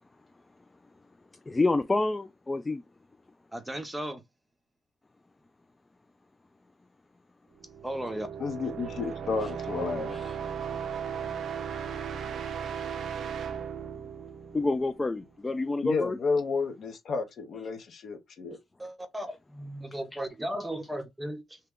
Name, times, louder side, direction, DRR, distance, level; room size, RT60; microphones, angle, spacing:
voice 1, 1.5-2.8 10.1-10.3 14.5-16.2 20.1-20.2, left 2 dB, 20° left, 0.3 m, -28 dB
voice 2, 3.5-4.2 7.8-8.3 18.8-21.6, right 1 dB, 10° right, 0.7 m, -36 dB
sound 1, 7.6-15.3, right 7 dB, 60° right, 0.5 m, -36 dB
voice 3, 8.4-10.2 15.8-18.6, left 4 dB, 60° left, 0.9 m, -31 dB
2.8 x 2.2 x 3.6 m
cardioid pair, 90°, 0 cm